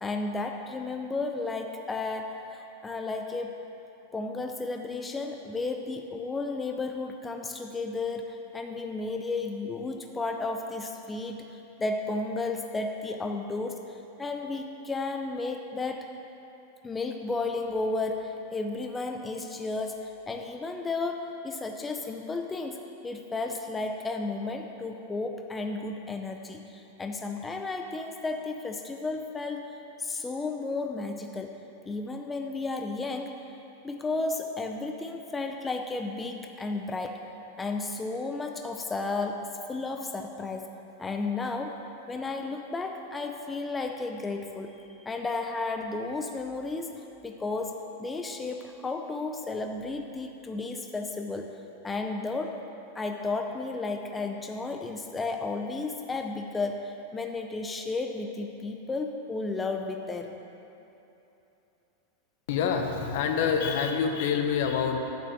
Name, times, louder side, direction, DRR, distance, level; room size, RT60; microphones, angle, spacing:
voice 1, 0.0-3.6 4.1-16.1 16.8-29.7 30.0-31.6 31.9-33.3 33.8-37.2 37.6-40.7 41.0-41.8 42.1-51.6 51.8-52.6 52.9-60.4, left 3 dB, 15° left, 4 dB, 0.6 m, -33 dB
voice 2, 62.5-65.0, left 6 dB, 65° left, 4 dB, 1.1 m, -26 dB
10.5 x 5.7 x 7.6 m, 2.9 s
hypercardioid pair, 125°, 0 cm